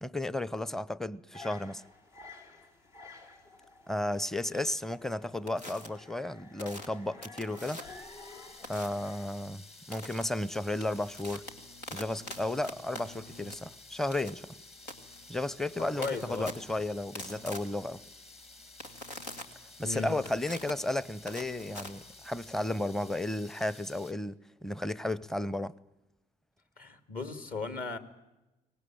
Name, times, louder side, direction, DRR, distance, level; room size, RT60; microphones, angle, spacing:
voice 1, 0.0-1.8 3.9-7.8 8.7-11.5 11.9-14.5 15.3-18.0 19.8-25.7, left 1 dB, ahead, 0.8 m, -33 dB
sound 1, 1.3-9.3, left 3 dB, 65° left, 5.0 m, -52 dB
sound 2, 5.5-5.9 6.6-8.1 8.6-9.1 9.9-10.2 10.6-22.5, left 1 dB, 85° left, 2.0 m, -45 dB
sound 3, 7.6-24.1, left 3 dB, 30° left, 2.2 m, -53 dB
voice 2, 15.9-16.5 19.8-20.2 26.8-28.0, left 4 dB, 45° left, 2.7 m, -36 dB
23.5 x 19.0 x 9.0 m
figure-of-eight pair, 50°, 21 cm